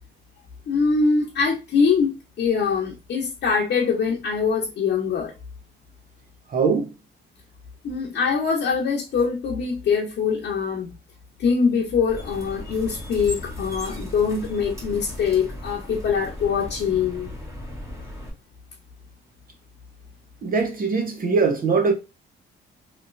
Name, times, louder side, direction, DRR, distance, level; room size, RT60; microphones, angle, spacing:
voice 1, 0.7-5.3 7.8-10.9 11.4-17.3, left 5 dB, 60° left, 0.8 m, -23 dB
voice 2, 6.5-6.9 20.4-21.9, right 4 dB, 45° right, 0.8 m, -21 dB
sound 1, 12.1-18.3, left 1 dB, 15° right, 1.3 m, -37 dB
3.0 x 2.9 x 2.5 m
cardioid pair, 90°, 20 cm